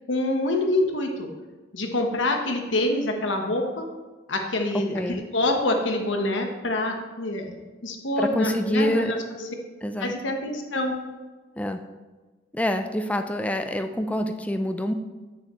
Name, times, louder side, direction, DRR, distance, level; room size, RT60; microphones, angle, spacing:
voice 1, 0.1-1.3 1.7-3.8 4.3-7.5 7.8-9.5 10.0-10.9, left 2 dB, 85° left, 3 dB, 1.2 m, -26 dB
voice 2, 4.7-5.2 8.2-9.1 9.8-10.1 11.6-11.8 12.5-14.9, equal, 10° left, 7 dB, 0.4 m, -26 dB
9.0 x 6.8 x 3.1 m, 1.3 s
head